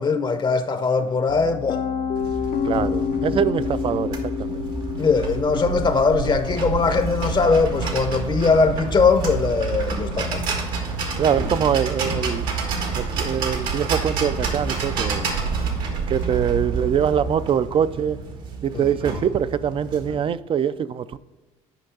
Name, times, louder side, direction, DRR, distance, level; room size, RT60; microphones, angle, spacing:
voice 1, 0.0-1.8 2.8-2.9 5.0-10.5 18.7-18.9, left 4 dB, 30° left, 0.7 m, -21 dB
Piano, 1.3-13.2, left 7 dB, 65° left, 0.7 m, -31 dB
sound 1, 2.1-20.2, right 5 dB, 75° right, 1.6 m, -28 dB
voice 2, 2.6-4.6 11.2-12.5 12.9-15.3 16.1-18.2 18.6-21.2, right 8 dB, 35° right, 0.4 m, -23 dB
9.0 x 5.2 x 3.8 m
supercardioid pair, 80°, 15 cm